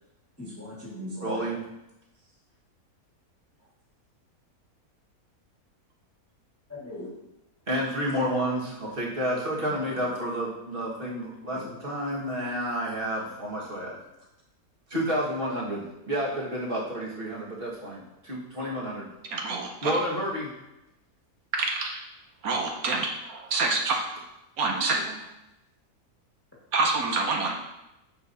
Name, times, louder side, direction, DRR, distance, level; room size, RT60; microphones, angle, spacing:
voice 1, 0.4-1.5 6.7-7.1 11.5-11.7, left 1 dB, 10° left, -6 dB, 1.6 m, -39 dB
voice 2, 1.2-1.6 7.7-14.0 14.9-19.1 19.8-20.5 24.7-25.2, equal, 35° right, -5 dB, 1.8 m, -30 dB
voice 3, 19.3-19.9 21.5-22.0 22.4-24.0 24.6-25.0 26.7-27.7, right 3 dB, 70° right, 1 dB, 1.2 m, -27 dB
9.0 x 6.3 x 2.7 m, 0.92 s
omnidirectional pair, 1.6 m